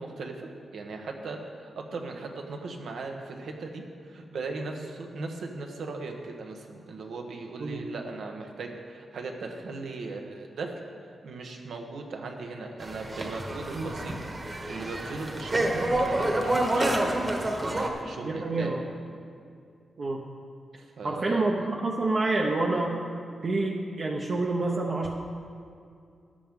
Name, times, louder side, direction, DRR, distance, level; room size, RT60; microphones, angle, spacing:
voice 1, 0.0-10.7 11.0-14.2 14.4-17.0 17.6-18.8 20.8-21.7, right 3 dB, 80° right, 3 dB, 1.3 m, -38 dB
sound 1, 12.8-17.9, right 1 dB, 30° right, 1.3 m, -28 dB
voice 2, 18.2-18.8 20.0-20.2 21.0-22.9 23.4-25.2, right 2 dB, 45° right, -2 dB, 0.9 m, -28 dB
13.5 x 10.5 x 3.7 m, 2.4 s
wide cardioid pair, 115°, 0 cm